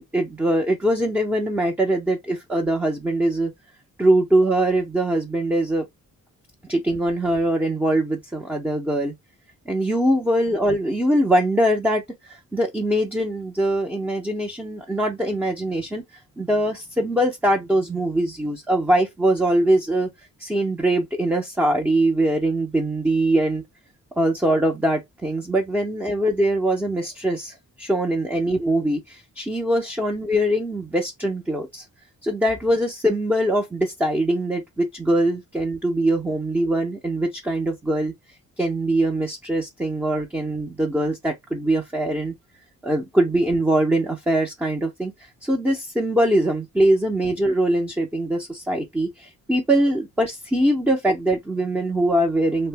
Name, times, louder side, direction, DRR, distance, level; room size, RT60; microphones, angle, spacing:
voice 1, 0.0-3.5 4.0-5.9 6.7-9.1 9.7-20.1 20.4-23.6 24.2-31.9 32.2-38.1 38.6-42.3 42.8-45.1 45.4-52.7, right 1 dB, 5° right, 0.5 m, -22 dB
2.5 x 2.1 x 3.2 m
cardioid pair, 65°, 35 cm